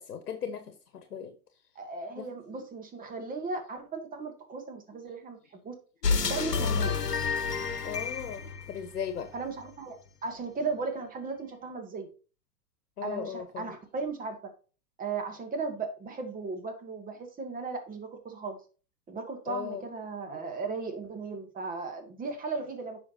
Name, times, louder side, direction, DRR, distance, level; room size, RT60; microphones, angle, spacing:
voice 1, 0.0-1.3 2.2-2.3 7.8-9.3 13.0-13.7 19.5-19.9, left 7 dB, 70° left, 9 dB, 1.2 m, -37 dB
voice 2, 1.8-5.7 6.2-6.9 9.3-10.0 10.2-12.1 13.0-14.5 15.0-18.6 19.1-23.0, right 4 dB, 15° right, 4 dB, 2.2 m, -36 dB
sound 1, 6.0-9.5, left 5 dB, 90° left, 1.1 m, -29 dB
9.7 x 6.2 x 2.8 m, 0.35 s
figure-of-eight pair, 110°, 47 cm